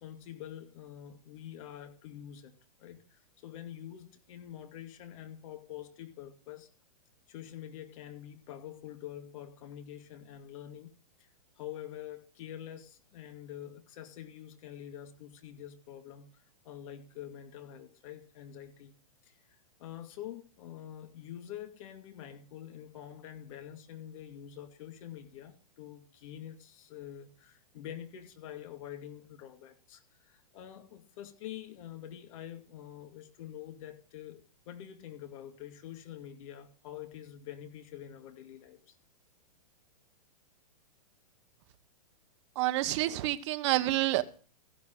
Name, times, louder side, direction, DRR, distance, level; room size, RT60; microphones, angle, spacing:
voice 1, 0.0-6.7 7.3-10.9 11.2-11.3 11.6-19.0 19.2-39.0, left 11 dB, 55° left, 2.4 m, -46 dB
voice 2, 42.5-44.2, right 16 dB, 50° right, 1.3 m, -28 dB
15.5 x 5.9 x 9.0 m
hypercardioid pair, 125°, 20 cm